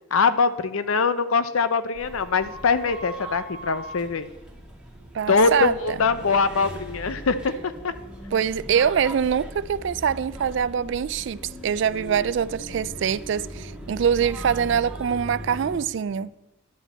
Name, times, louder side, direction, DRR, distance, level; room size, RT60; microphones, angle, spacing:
voice 1, 0.1-4.3 5.3-7.9, left 4 dB, 80° left, 0.6 m, -23 dB
sound 1, 1.9-15.8, right 1 dB, 5° right, 1.5 m, -39 dB
voice 2, 5.1-6.0 8.3-16.3, right 7 dB, 55° right, 0.3 m, -24 dB
10.5 x 5.1 x 7.5 m
head